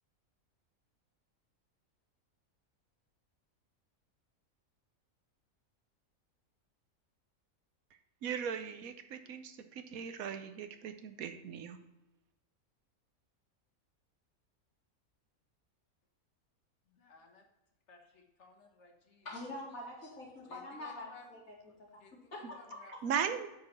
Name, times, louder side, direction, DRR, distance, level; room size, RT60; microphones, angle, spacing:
voice 1, 8.2-11.8 22.4-22.5 23.0-23.5, right 7 dB, 80° right, 9 dB, 1.2 m, -38 dB
voice 2, 16.8-17.5 17.9-19.3 20.4-21.4 21.6-22.9 23.3-23.4, left 4 dB, 55° left, 3 dB, 1.5 m, -59 dB
voice 3, 19.2-21.4 21.9-22.0 22.3-22.6, left 1 dB, 70° left, -4 dB, 3.0 m, -44 dB
8.6 x 4.9 x 5.7 m, 0.96 s
omnidirectional pair, 1.5 m